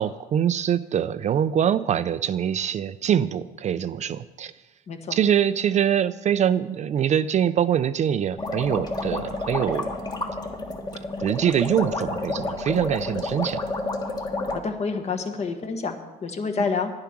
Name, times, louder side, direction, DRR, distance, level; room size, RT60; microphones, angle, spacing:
voice 1, 0.0-4.5 5.1-9.9 11.2-13.6, right 9 dB, 45° right, 14 dB, 0.4 m, -24 dB
voice 2, 4.9-5.2 14.5-16.9, left 4 dB, 40° left, 7 dB, 1.4 m, -28 dB
sound 1, 8.4-14.6, left 2 dB, 25° left, 1.5 m, -30 dB
10.5 x 9.8 x 6.0 m, 1.1 s
cardioid pair, 110°, 17 cm